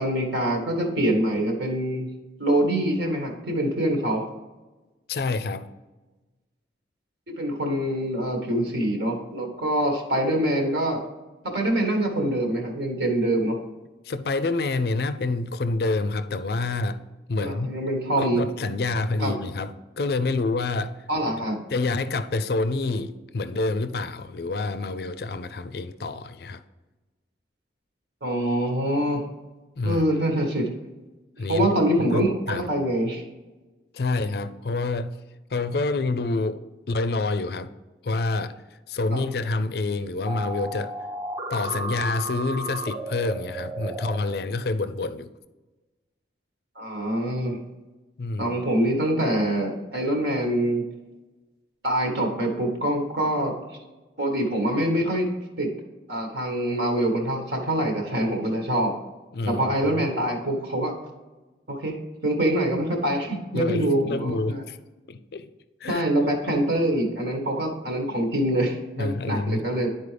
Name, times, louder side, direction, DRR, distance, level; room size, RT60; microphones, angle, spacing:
voice 1, 0.0-2.1 2.4-4.2 7.3-11.0 11.4-13.6 17.4-18.4 19.2-19.4 21.1-21.6 28.2-29.3 29.8-30.7 31.5-33.2 39.1-39.2 46.7-47.6 48.4-50.8 51.8-53.5 54.2-55.3 55.6-55.7 56.1-58.9 59.4-60.9 61.7-62.0 62.2-64.6 65.9-69.9, right 1 dB, 70° right, 1 dB, 1.5 m, -25 dB
voice 2, 5.1-5.7 14.0-17.0 17.3-17.7 18.2-21.0 21.7-26.6 29.8-30.0 31.4-31.7 32.1-32.7 33.9-35.2 35.5-37.7 38.0-38.5 38.9-40.9 41.5-45.3 48.2-48.5 59.3-60.1 63.5-64.8 65.1-65.5 65.8-66.0 69.0-69.7, left 3 dB, 60° left, 12 dB, 0.4 m, -27 dB
sound 1, 40.3-44.2, right 2 dB, 15° right, 0.5 m, -33 dB
11.0 x 4.4 x 3.3 m, 1.2 s
head